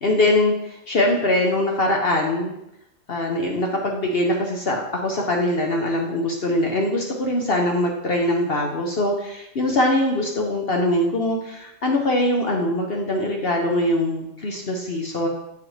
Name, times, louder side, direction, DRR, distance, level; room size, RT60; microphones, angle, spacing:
voice 1, 0.0-2.5 3.1-15.3, left 1 dB, 50° left, 1 dB, 1.0 m, -22 dB
7.8 x 6.2 x 3.2 m, 0.83 s
omnidirectional pair, 1.4 m